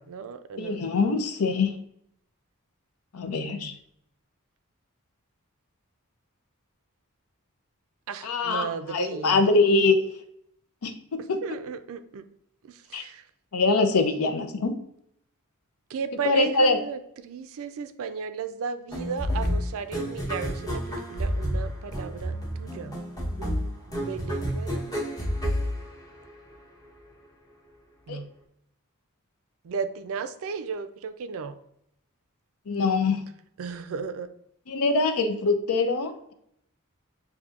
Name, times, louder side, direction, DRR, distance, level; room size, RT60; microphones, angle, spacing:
voice 1, 0.0-0.9 3.2-3.7 8.1-9.4 11.4-12.3 12.6-13.2 15.9-23.0 23.4-23.5 23.9-24.9 28.1-28.3 29.6-31.6 33.6-34.3, right 6 dB, 65° right, 11 dB, 0.4 m, -35 dB
voice 2, 0.6-1.7 3.1-3.7 8.2-10.0 10.8-10.9 11.3-11.4 12.9-13.0 13.5-14.7 16.2-16.8 28.1-28.2 32.7-33.2 34.7-36.3, left 3 dB, 80° left, 7 dB, 0.6 m, -23 dB
sound 1, 18.9-26.5, equal, 15° left, 0.9 m, -30 dB
6.6 x 2.6 x 2.4 m, 0.73 s
head